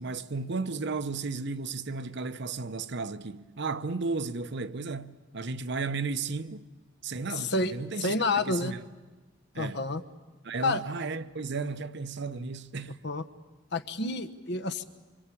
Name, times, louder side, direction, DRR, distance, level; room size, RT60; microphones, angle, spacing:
voice 1, 0.0-6.7 7.0-8.8 9.5-9.8 10.4-13.0, right 4 dB, 60° right, 0.9 m, -34 dB
voice 2, 7.3-8.7 9.6-10.0 10.6-10.8 12.9-13.2 13.7-14.8, left 2 dB, 55° left, 1.2 m, -29 dB
26.0 x 25.0 x 8.5 m
head